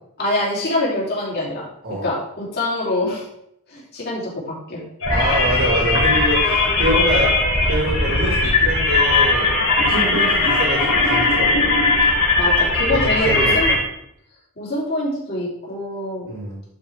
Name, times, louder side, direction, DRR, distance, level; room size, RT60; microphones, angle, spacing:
voice 1, 0.2-1.6 2.0-3.3 3.7-4.8 9.9-10.2 12.3-13.7 14.6-16.3, left 1 dB, 45° left, -5 dB, 3.2 m, -25 dB
sound 1, 5.0-13.8, left 2 dB, 75° left, 3.3 m, -18 dB
voice 2, 5.1-9.5 9.8-11.9 13.3-13.8 16.3-16.6, right 1 dB, 55° right, -4 dB, 2.4 m, -25 dB
11.5 x 5.0 x 3.6 m, 0.75 s
head